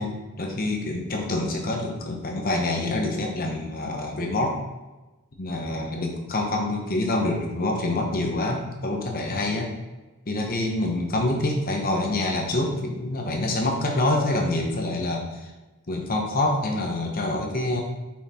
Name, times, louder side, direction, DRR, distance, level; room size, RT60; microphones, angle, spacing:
voice 1, 0.0-4.5 5.4-9.7 10.3-15.5 15.9-17.8, left 2 dB, 40° left, 1 dB, 1.0 m, -26 dB
5.8 x 4.6 x 4.3 m, 1.1 s
head